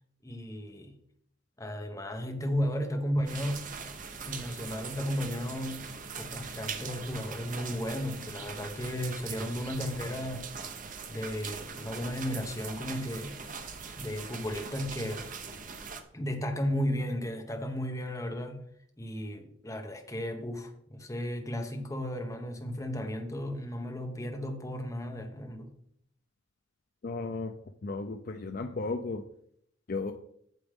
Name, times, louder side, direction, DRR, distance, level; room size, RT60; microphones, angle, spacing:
voice 1, 0.2-1.0 1.6-3.6 4.2-5.9 6.2-10.5 11.1-13.6 14.0-15.2 16.1-18.6 19.0-25.7, equal, 15° left, 4 dB, 1.0 m, -34 dB
sound 1, 3.3-16.0, right 5 dB, 40° right, 0.7 m, -41 dB
voice 2, 27.0-27.5 27.8-29.2 29.9-30.1, left 3 dB, 45° left, 6 dB, 0.4 m, -34 dB
8.3 x 7.0 x 3.6 m, 0.69 s
head